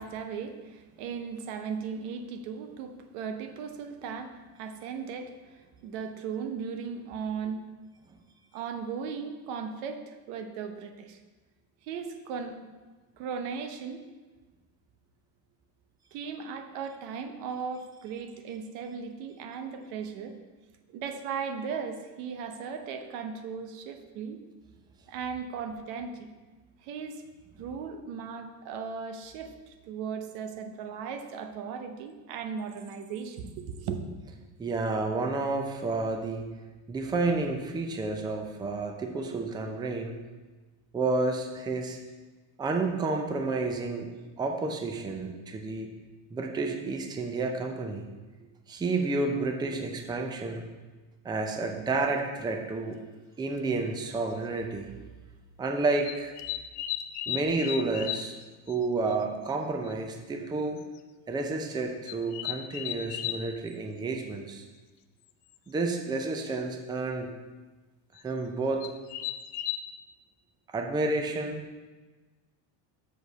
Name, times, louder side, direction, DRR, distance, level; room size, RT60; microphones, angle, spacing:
voice 1, 0.0-7.7 8.5-11.2 11.8-12.6 13.2-14.0 16.1-20.4 20.9-24.4 25.1-26.3 26.8-27.2 27.6-34.0, right 6 dB, 85° right, 7 dB, 1.0 m, -37 dB
voice 2, 34.6-36.5 36.9-40.1 40.9-42.0 42.6-44.1 44.4-45.9 46.3-48.1 48.7-50.6 51.2-53.0 53.4-54.9 55.6-56.3 57.3-58.3 58.7-60.8 61.3-64.7 65.7-67.3 68.2-68.9 70.7-71.6, right 3 dB, 10° right, 3 dB, 0.5 m, -30 dB
sound 1, 52.1-52.2 53.6-53.7 54.4-54.6 56.0-58.4 58.7-58.8 59.1-59.2 59.5-59.6 59.9-60.0 60.8-61.0 62.1-63.4 65.5-65.6 65.9-66.3 68.2-68.3 68.8-69.8, left 13 dB, 70° left, 0.7 m, -35 dB
6.3 x 5.1 x 6.7 m, 1.3 s
cardioid pair, 155°, 43 cm